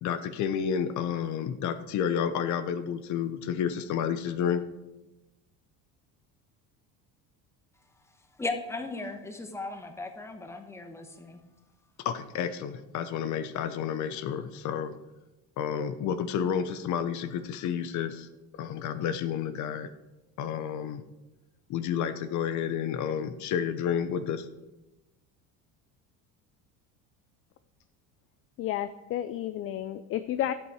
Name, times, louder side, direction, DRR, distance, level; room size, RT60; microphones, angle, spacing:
voice 1, 0.0-4.6 12.0-14.9 15.6-18.3 18.6-19.9 20.4-21.0 21.7-24.5, left 8 dB, 55° left, 11 dB, 0.8 m, -30 dB
voice 2, 8.4-11.4, left 3 dB, 10° left, 5 dB, 1.1 m, -36 dB
voice 3, 28.6-30.5, left 12 dB, 40° left, 11 dB, 0.4 m, -31 dB
12.0 x 8.5 x 4.8 m, 1.0 s
cardioid pair, 145°, 35 cm